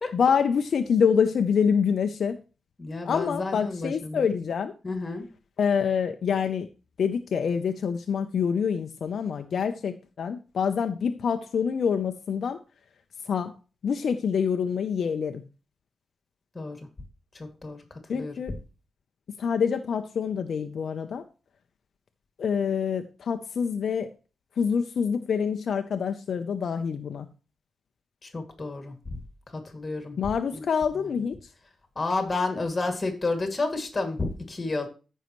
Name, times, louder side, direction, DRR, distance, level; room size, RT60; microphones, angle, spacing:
voice 1, 0.1-2.4 3.1-4.7 5.6-6.7 7.0-12.6 13.3-13.5 13.8-15.4 18.1-18.6 19.4-21.2 22.4-24.1 24.6-27.3 30.2-31.4, left 6 dB, 65° left, 0.6 m, -26 dB
voice 2, 2.8-4.3 4.8-5.3 16.5-16.8 17.3-17.8 18.1-18.3 28.2-29.2 29.5-30.2 30.5-30.6 31.0-31.1 32.0-34.9, left 3 dB, 25° left, 2.3 m, -31 dB
14.5 x 5.5 x 3.1 m
wide cardioid pair, 130°, 0 cm